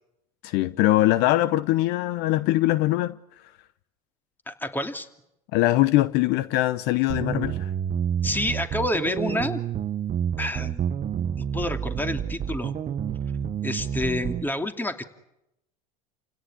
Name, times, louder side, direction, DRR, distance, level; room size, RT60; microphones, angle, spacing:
voice 1, 0.4-3.1 5.5-7.7, left 16 dB, 60° left, 0.9 m, -22 dB
voice 2, 4.5-5.1 8.2-9.6 10.4-10.9 11.4-12.7 13.6-15.0, left 1 dB, 10° left, 2.7 m, -28 dB
sound 1, 7.1-14.5, right 9 dB, 35° right, 1.2 m, -29 dB
29.0 x 17.0 x 10.0 m
hypercardioid pair, 85°, 19 cm